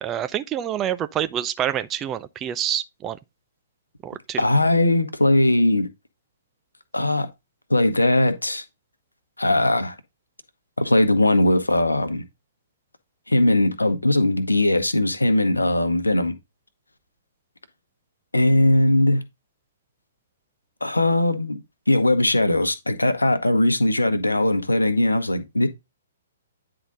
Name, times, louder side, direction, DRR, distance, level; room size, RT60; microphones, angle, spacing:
voice 1, 0.0-3.2 4.0-4.4, right 10 dB, 20° right, 0.4 m, -27 dB
voice 2, 4.4-5.9 6.9-7.3 7.7-8.6 9.4-9.9 10.8-12.2 13.3-16.3 18.3-19.2 20.8-21.6 21.9-25.7, left 1 dB, 80° left, 1.0 m, -19 dB
9.4 x 3.9 x 3.8 m
figure-of-eight pair, 120°, 0 cm